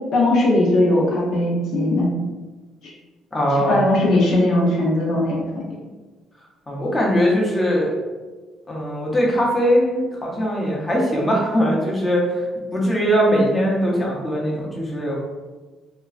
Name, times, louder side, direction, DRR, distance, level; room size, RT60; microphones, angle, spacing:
voice 1, 0.1-2.1 2.8-2.9 3.7-5.6, left 1 dB, 70° left, -4 dB, 0.8 m, -19 dB
voice 2, 3.3-3.8 6.7-7.9 8.7-12.4 12.7-15.1, equal, 20° left, -4 dB, 0.8 m, -20 dB
3.0 x 2.3 x 2.4 m, 1.3 s
cardioid pair, 105°, 0 cm